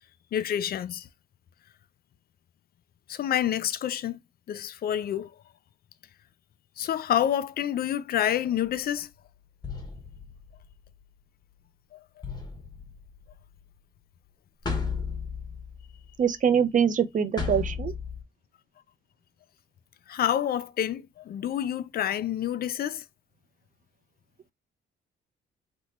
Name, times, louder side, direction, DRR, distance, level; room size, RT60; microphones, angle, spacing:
voice 1, 0.3-1.1 3.1-4.2 4.5-5.3 6.8-9.1 11.9-12.0 20.1-23.0, left 10 dB, 50° left, 0.4 m, -28 dB
sound 1, 8.7-8.9 9.6-11.0 12.2-13.6 14.6-16.2 17.4-18.2, left 5 dB, 20° left, 1.0 m, -35 dB
voice 2, 16.2-17.9, right 7 dB, 40° right, 0.5 m, -24 dB
3.0 x 2.2 x 4.0 m
cardioid pair, 90°, 20 cm